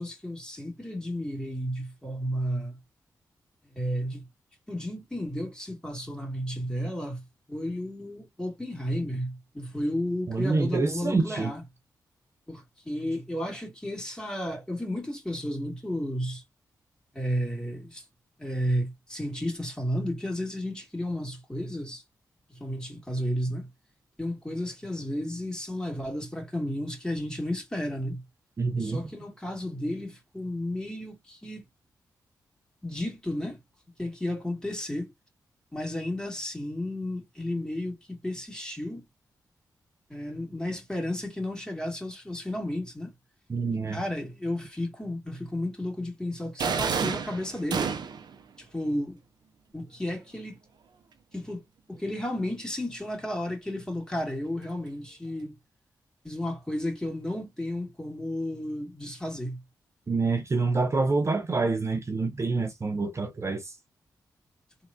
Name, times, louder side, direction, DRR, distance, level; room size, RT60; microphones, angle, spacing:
voice 1, 0.0-2.8 3.7-4.3 4.7-7.2 7.5-11.6 12.5-16.4 17.1-18.0 18.4-22.0 22.5-23.7 24.2-28.2 28.8-31.6 32.8-33.6 34.0-35.1 35.7-39.1 40.1-43.1 43.9-47.9 48.6-49.2 49.7-50.6 51.3-55.5 56.2-59.6, left 1 dB, 10° left, 2.0 m, -33 dB
voice 2, 10.3-11.5 28.6-29.0 43.5-44.0 60.1-63.7, right 3 dB, 40° right, 0.6 m, -27 dB
sound 1, 46.6-48.3, right 6 dB, 80° right, 0.6 m, -29 dB
3.4 x 2.9 x 2.2 m
cardioid pair, 55°, 7 cm